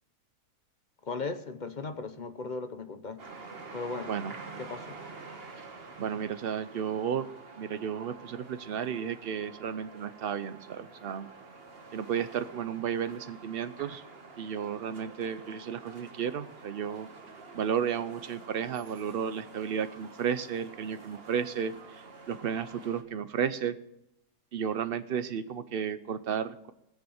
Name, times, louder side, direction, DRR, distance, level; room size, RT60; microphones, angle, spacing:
voice 1, 1.0-3.2 3.7-4.1 4.6-5.0, left 3 dB, 45° left, 9 dB, 0.6 m, -37 dB
sound 1, 3.2-23.0, right 4 dB, 35° right, 1.5 m, -48 dB
voice 2, 6.0-7.3 7.6-11.3 11.9-14.0 14.4-17.1 17.5-21.7 22.3-23.8 24.5-26.7, right 8 dB, 85° right, 12 dB, 0.5 m, -33 dB
20.0 x 7.0 x 6.3 m, 0.86 s
omnidirectional pair, 1.8 m